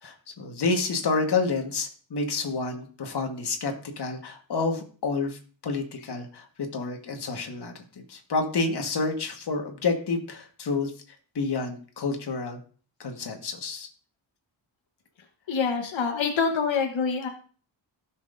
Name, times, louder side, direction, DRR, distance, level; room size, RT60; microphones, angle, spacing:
voice 1, 0.0-7.7 8.1-10.9 11.3-12.6 13.0-13.9, left 3 dB, 60° left, 3 dB, 1.5 m, -29 dB
voice 2, 15.5-17.3, left 5 dB, 90° left, 3 dB, 1.2 m, -26 dB
15.5 x 6.3 x 2.6 m, 0.41 s
wide cardioid pair, 155°, 44 cm